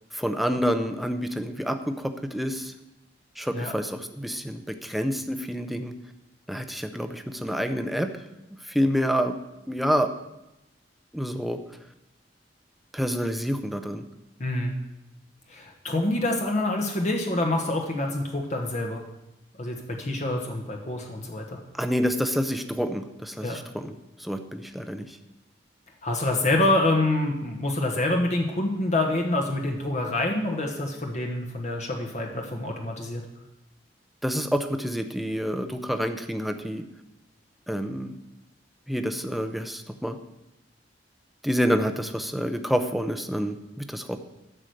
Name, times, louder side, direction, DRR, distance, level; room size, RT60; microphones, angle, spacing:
voice 1, 0.1-2.7 3.4-5.9 6.5-8.1 8.7-9.4 9.7-10.1 11.1-11.6 12.9-14.0 21.7-25.2 34.2-36.8 37.7-38.1 38.9-40.2 41.4-44.2, equal, ahead, 7 dB, 0.7 m, -28 dB
voice 2, 14.4-14.7 15.5-19.0 19.6-21.6 23.4-23.6 26.0-33.2, left 2 dB, 40° left, 1 dB, 1.3 m, -26 dB
12.5 x 5.0 x 7.8 m, 0.92 s
head